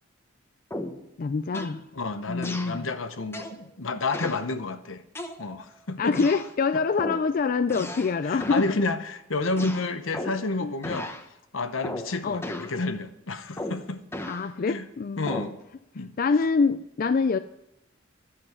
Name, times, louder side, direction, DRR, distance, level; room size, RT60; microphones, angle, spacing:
sound 1, 0.7-1.1 1.5-1.8 2.4-2.8 3.3-3.6 4.1-4.5 5.1-5.7 6.1-6.5 7.0-7.3 7.7-8.1 8.4-8.7 9.6-10.5 10.8-11.2 11.8-12.1 12.4-12.8 13.6-14.4 15.3-15.6, left 1 dB, 15° left, 0.9 m, -35 dB
voice 1, 1.2-1.8 2.3-2.9 6.0-8.7 10.6-10.7 12.2-12.4 14.3-15.5 16.2-17.4, left 4 dB, 45° left, 10 dB, 0.4 m, -25 dB
voice 2, 1.9-5.0 5.4-6.2 8.2-11.1 11.5-14.0 14.7-14.8 15.2-15.6 15.9-16.1, left 3 dB, 80° left, 10 dB, 0.9 m, -30 dB
12.0 x 7.7 x 7.9 m, 0.84 s
head